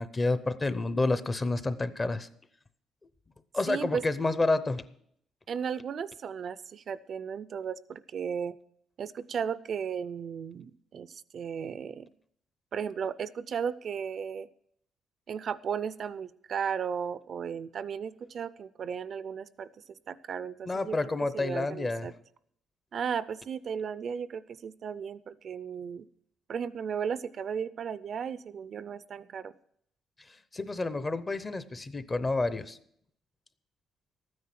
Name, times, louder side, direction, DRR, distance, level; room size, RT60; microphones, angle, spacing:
voice 1, 0.0-2.3 3.5-4.8 20.7-22.1 30.5-32.8, left 2 dB, 20° left, 13 dB, 0.7 m, -29 dB
voice 2, 3.7-4.0 5.5-8.6 9.0-12.1 12.7-14.5 15.3-21.0 21.3-22.1 22.9-26.1 26.5-29.5, right 7 dB, 45° right, 16 dB, 0.4 m, -35 dB
13.5 x 9.5 x 5.9 m, 0.69 s
cardioid pair, 135°, 0 cm